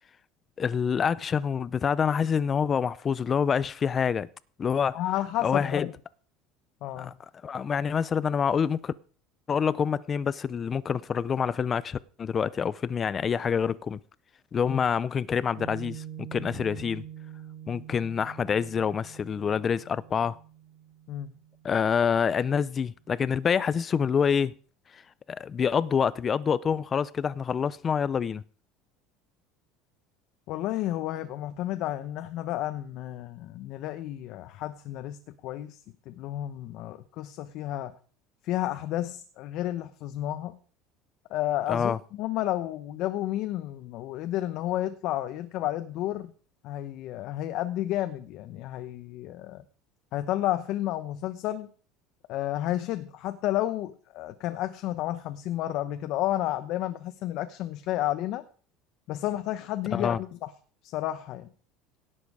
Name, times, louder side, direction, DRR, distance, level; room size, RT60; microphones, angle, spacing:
voice 1, 0.6-4.3 4.6-5.0 5.4-5.9 7.0-7.1 7.4-8.9 9.5-14.0 14.5-17.0 17.7-20.4 21.6-24.5 24.9-25.0 25.3-28.4 41.7-42.0 59.9-60.2, left 7 dB, 30° left, 0.6 m, -27 dB
voice 2, 4.9-5.9 6.8-7.1 14.7-14.8 21.1-21.3 30.5-35.8 36.1-37.9 38.4-40.6 41.3-46.3 46.6-49.6 50.1-51.7 52.3-58.4 59.1-60.5 60.8-61.5, left 14 dB, 55° left, 1.0 m, -31 dB
Piano, 15.6-22.2, right 10 dB, 50° right, 3.4 m, -45 dB
17.5 x 7.7 x 4.9 m
supercardioid pair, 130°, 0 cm